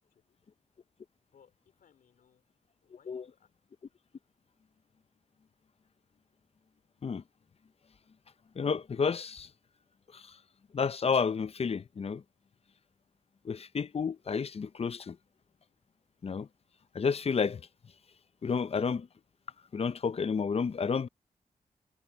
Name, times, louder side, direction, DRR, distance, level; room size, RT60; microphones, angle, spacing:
voice 1, 1.3-2.4 2.8-3.5, left 7 dB, 85° left, 4.3 m, -65 dB
voice 2, 8.6-9.5 10.1-10.4 10.7-12.2 13.4-15.2 16.2-16.5 16.9-17.6 18.4-19.1 19.7-21.1, left 5 dB, 45° left, 0.6 m, -31 dB
cardioid pair, 60°, 14 cm